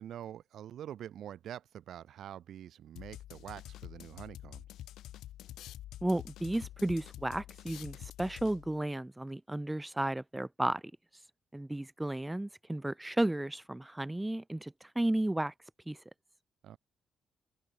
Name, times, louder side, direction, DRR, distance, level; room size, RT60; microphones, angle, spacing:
voice 1, 0.0-4.6 16.6-16.8, right 10 dB, 70° right, 3.1 m, -45 dB
sound 1, 3.0-8.8, left 13 dB, 80° left, 3.0 m, -47 dB
voice 2, 6.0-10.8 11.5-15.5 15.9-16.0, right 1 dB, 10° right, 1.2 m, -33 dB
open air
cardioid pair, 90°, 0 cm